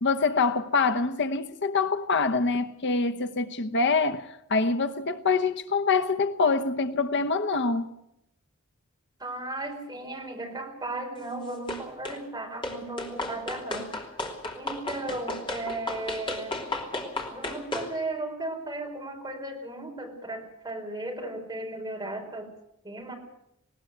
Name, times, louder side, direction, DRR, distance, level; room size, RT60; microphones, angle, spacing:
voice 1, 0.0-8.0, left 4 dB, 55° left, 0.9 m, -25 dB
voice 2, 9.2-13.9 14.5-16.6 17.3-22.5 22.8-23.1, right 2 dB, 15° right, 4.5 m, -35 dB
sound 1, 11.7-12.2 12.6-17.9, left 2 dB, 25° left, 3.0 m, -34 dB
19.5 x 18.5 x 8.0 m
head